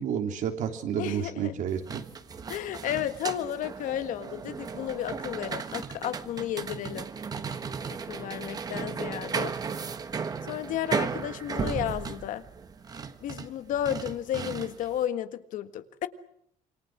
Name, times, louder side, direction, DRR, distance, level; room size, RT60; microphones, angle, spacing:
voice 1, 0.0-2.0, right 8 dB, 75° right, 5 dB, 3.3 m, -30 dB
voice 2, 1.0-1.5 2.5-7.1 7.9-9.8 10.4-12.4 13.2-16.1, left 11 dB, 85° left, 11 dB, 1.6 m, -33 dB
sound 1, 1.7-15.0, right 5 dB, 30° right, 1.4 m, -35 dB
27.5 x 25.5 x 6.2 m, 0.72 s
cardioid pair, 175°, 13 cm